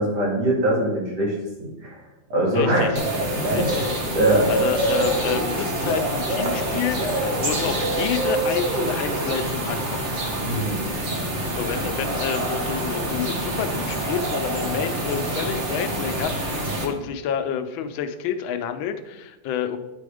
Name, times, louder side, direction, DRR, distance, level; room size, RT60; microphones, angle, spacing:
voice 1, 0.0-1.3 1.6-2.0 2.3-3.0 3.3-3.7 4.1-4.5 10.4-10.8, right 1 dB, 60° right, -4 dB, 2.9 m, -22 dB
voice 2, 2.5-2.9 3.5-3.9 4.3-10.1 11.6-19.8, left 8 dB, 90° left, 8 dB, 1.5 m, -29 dB
sound 1, 3.0-16.9, right 1 dB, 40° right, 1.4 m, -26 dB
10.0 x 4.2 x 4.9 m, 0.99 s
omnidirectional pair, 2.1 m